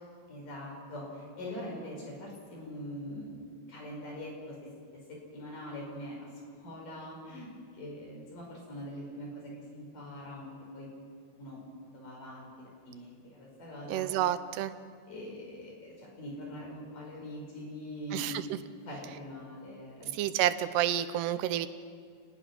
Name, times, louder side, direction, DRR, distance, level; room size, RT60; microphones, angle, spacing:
voice 1, 0.3-4.7 5.1-6.3 6.6-10.9 11.4-14.1 15.1-18.4 18.9-20.3, left 1 dB, 50° left, -1 dB, 6.9 m, -43 dB
voice 2, 13.9-14.7 18.1-18.4 20.1-21.7, right 12 dB, 90° right, 12 dB, 2.9 m, -29 dB
28.0 x 20.0 x 6.1 m, 2.1 s
omnidirectional pair, 4.7 m